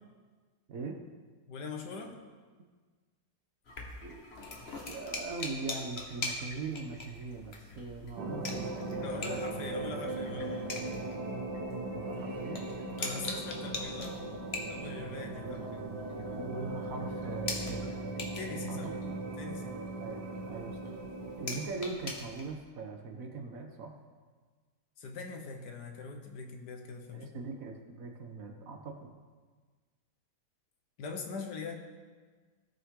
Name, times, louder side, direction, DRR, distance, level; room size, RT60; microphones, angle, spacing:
voice 1, 0.7-1.0 4.0-4.3 4.7-9.2 9.4-9.5 11.9-12.7 15.4-15.7 16.3-17.8 18.7-19.1 20.0-21.0 21.4-23.9 27.1-29.1, right 3 dB, 55° right, 3 dB, 1.3 m, -41 dB
voice 2, 1.5-2.2 9.0-10.8 13.0-14.2 14.7-15.8 18.3-19.0 19.4-19.8 25.0-27.4 31.0-31.8, left 4 dB, 75° left, 3 dB, 1.6 m, -42 dB
sound 1, 3.7-22.5, left 2 dB, 40° left, 1.2 m, -43 dB
sound 2, 8.2-21.7, right 2 dB, 75° right, 1.7 m, -38 dB
17.0 x 5.7 x 3.7 m, 1.5 s
omnidirectional pair, 1.8 m